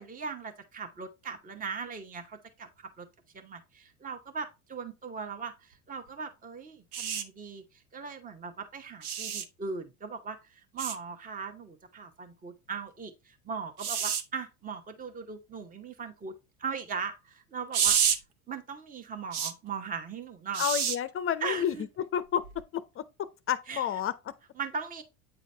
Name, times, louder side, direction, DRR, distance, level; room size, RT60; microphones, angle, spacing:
voice 1, 0.0-3.1 3.3-16.3 16.6-18.0 18.5-20.6 21.4-21.9 23.7-23.9 24.6-25.0, right 5 dB, 20° right, 0.9 m, -39 dB
sound 1, 6.9-7.2 9.0-9.4 10.8-11.0 13.8-14.2 17.7-18.2 19.3-19.5 20.5-21.0 22.4-22.6, right 8 dB, 85° right, 0.9 m, -28 dB
voice 2, 20.6-21.7 22.1-23.0 23.5-24.1, left 9 dB, 30° left, 0.5 m, -30 dB
8.7 x 3.9 x 3.3 m
hypercardioid pair, 80°, 43 cm